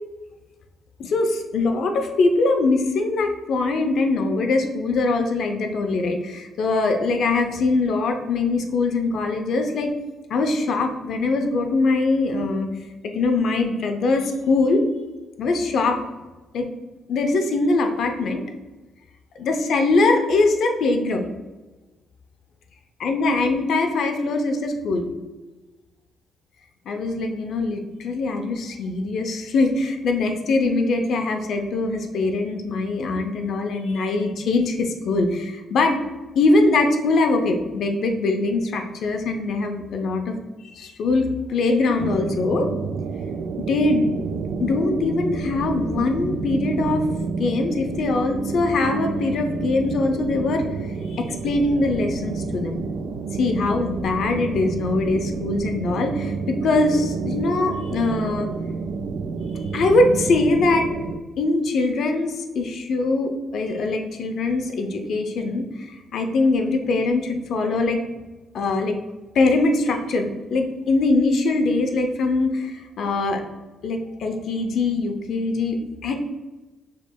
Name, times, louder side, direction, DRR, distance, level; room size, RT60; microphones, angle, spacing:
voice 1, 1.0-9.9 10.3-12.7 13.0-14.8 15.4-16.0 16.5-16.7 17.1-18.4 19.4-21.3 23.0-25.1 26.9-36.0 36.4-42.7 43.6-44.2 44.6-47.0 47.4-50.6 51.1-52.8 53.3-58.5 59.7-60.9 61.4-68.0 68.5-69.0 69.3-73.4 73.8-75.8 76.0-76.3, left 3 dB, 65° left, 4 dB, 0.5 m, -22 dB
sound 1, 42.0-61.2, right 4 dB, 70° right, 0.3 m, -29 dB
6.4 x 3.0 x 2.2 m, 1.2 s
cardioid pair, 90°, 0 cm